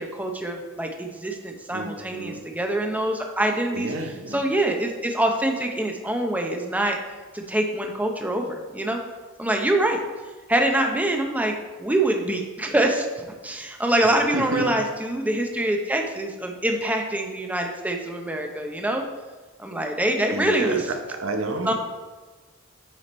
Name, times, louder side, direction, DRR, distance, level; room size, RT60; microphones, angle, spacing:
voice 1, 0.0-7.0 7.3-9.0 9.4-10.0 10.5-19.0 19.6-20.9 21.6-21.7, right 1 dB, 10° right, 3 dB, 0.8 m, -25 dB
voice 2, 1.7-2.4 3.7-4.4 14.3-14.7 20.3-21.7, right 2 dB, 90° right, 5 dB, 1.0 m, -29 dB
9.1 x 5.0 x 4.3 m, 1.3 s
head